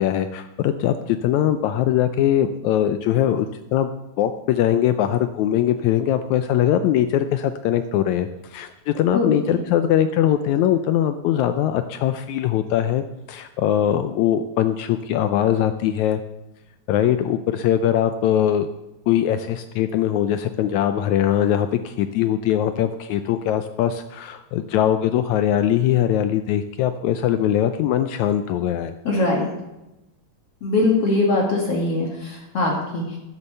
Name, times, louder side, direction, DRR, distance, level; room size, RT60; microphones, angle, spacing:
voice 1, 0.0-3.9 4.2-13.0 13.3-16.2 16.9-18.7 19.1-28.9, left 11 dB, 75° left, 10 dB, 1.8 m, -21 dB
voice 2, 9.1-9.6 29.0-29.5 30.6-33.0, left 2 dB, 50° left, -1 dB, 2.7 m, -21 dB
12.0 x 9.9 x 6.8 m, 0.95 s
omnidirectional pair, 3.6 m